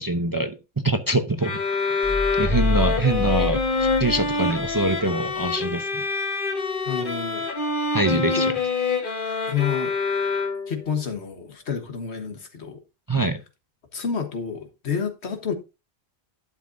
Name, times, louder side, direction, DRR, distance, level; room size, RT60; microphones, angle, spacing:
voice 1, 0.0-6.0 7.9-8.5 13.1-13.4, right 2 dB, 25° right, 0.6 m, -25 dB
sound 1, 1.4-10.9, left 4 dB, 50° left, 1.5 m, -26 dB
sound 2, 2.0-4.9, left 3 dB, 20° left, 0.9 m, -27 dB
voice 2, 6.9-7.5 8.1-8.4 9.5-9.9 10.7-12.8 13.9-15.5, left 7 dB, 80° left, 1.6 m, -29 dB
11.5 x 7.3 x 2.6 m
omnidirectional pair, 1.1 m